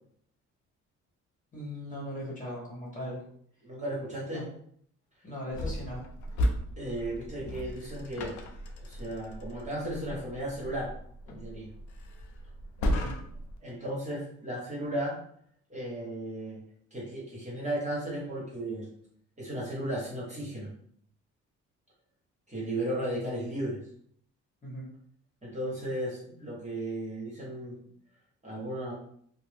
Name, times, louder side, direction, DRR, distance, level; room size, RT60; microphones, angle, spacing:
voice 1, 1.5-3.2 4.3-4.4 5.2-6.0 12.9-13.1 24.6-24.9, equal, 25° left, -4 dB, 1.2 m, -38 dB
voice 2, 3.6-4.4 5.5-5.6 6.8-8.4 8.9-10.9 11.3-11.7 13.6-15.2 15.7-16.6 16.9-18.9 19.4-20.7 22.5-23.8 25.4-27.8 28.4-28.9, right 1 dB, 25° right, -5 dB, 1.2 m, -35 dB
sound 1, 5.5-13.6, equal, 70° left, 0.5 m, -35 dB
2.5 x 2.0 x 3.3 m, 0.63 s
cardioid pair, 90°, 30 cm